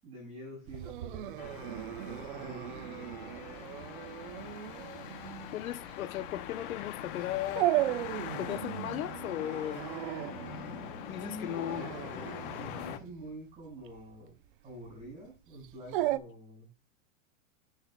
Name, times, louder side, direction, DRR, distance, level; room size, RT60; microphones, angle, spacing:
voice 1, 0.0-3.3 11.0-12.2 12.6-14.4 14.6-16.7, equal, 15° right, 5.8 m, -47 dB
Dog, 0.7-16.2, right 15 dB, 40° right, 0.6 m, -37 dB
sound 1, 1.4-13.0, left 10 dB, 40° left, 1.0 m, -43 dB
voice 2, 5.5-7.7 8.4-9.8 11.0-11.9, left 12 dB, 80° left, 0.9 m, -36 dB
10.0 x 8.2 x 2.3 m
supercardioid pair, 160°, 41 cm